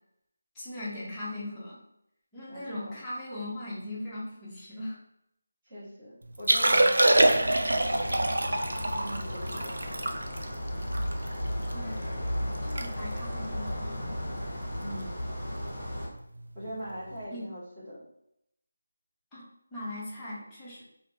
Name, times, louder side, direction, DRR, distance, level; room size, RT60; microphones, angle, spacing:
voice 1, 0.5-1.8 2.3-5.0 11.7-12.0 12.6-14.1 17.3-17.5 19.3-19.5 19.7-20.8, left 1 dB, 10° left, -9 dB, 0.7 m, -39 dB
voice 2, 2.5-3.0 5.6-8.2 8.9-10.1 14.8-15.3 16.5-18.0, equal, 15° right, -13 dB, 1.4 m, -42 dB
Liquid, 6.3-11.7 12.2-12.3 12.5-12.9 13.1-13.4 14.0-14.2 15.7-15.8, right 1 dB, 75° right, 0.4 m, -25 dB
sound 1, 7.1-16.1, equal, 25° left, 1.1 m, -35 dB
2.9 x 2.5 x 2.7 m, 0.79 s
figure-of-eight pair, 170°, 0 cm